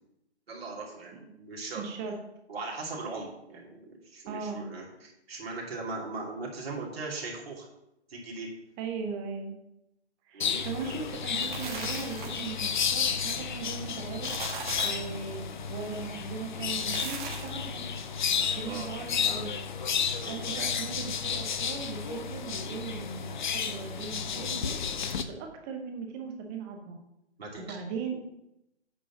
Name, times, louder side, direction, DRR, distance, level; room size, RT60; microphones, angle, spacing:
voice 1, 0.5-1.8 2.5-7.7 8.1-8.5 10.3-10.6 18.6-18.9 20.2-20.4 27.4-27.8, right 3 dB, 60° right, -3 dB, 2.9 m, -39 dB
voice 2, 1.7-2.2 4.3-4.7 8.8-9.5 10.3-14.3 14.8-15.4 15.7-17.8 18.5-19.5 19.9-24.7 25.3-27.0 27.6-28.2, right 5 dB, 15° right, 4 dB, 0.7 m, -38 dB
sound 1, 10.4-25.2, left 7 dB, 45° left, 0.7 m, -32 dB
sound 2, 11.1-12.6 14.0-15.1 16.6-17.6, right 4 dB, 45° right, 1.7 m, -39 dB
8.6 x 5.1 x 5.8 m, 0.85 s
figure-of-eight pair, 140°, 34 cm